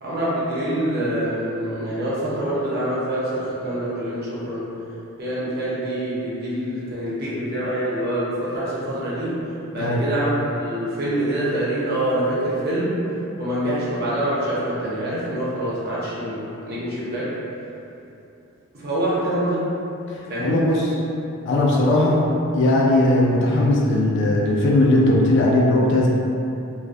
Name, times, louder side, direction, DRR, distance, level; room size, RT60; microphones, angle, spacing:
voice 1, 0.0-4.7 5.2-9.4 9.7-13.0 13.4-17.3 18.7-19.7 20.3-20.7, right 1 dB, 45° right, -8 dB, 0.6 m, -25 dB
voice 2, 20.4-20.9 21.5-22.2 22.5-26.1, left 1 dB, 55° left, -3 dB, 0.3 m, -18 dB
2.3 x 2.2 x 2.5 m, 2.8 s
head